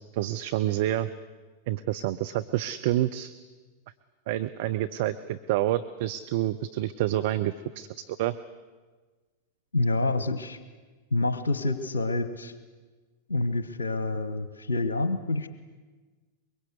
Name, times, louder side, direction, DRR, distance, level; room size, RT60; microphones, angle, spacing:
voice 1, 0.1-1.1 1.7-3.3 4.3-8.4, right 13 dB, 50° right, 10 dB, 0.7 m, -28 dB
voice 2, 9.7-10.6 11.1-12.5 13.3-15.5, left 2 dB, 75° left, 12 dB, 1.1 m, -27 dB
24.0 x 22.5 x 8.1 m, 1.3 s
figure-of-eight pair, 90°, 0 cm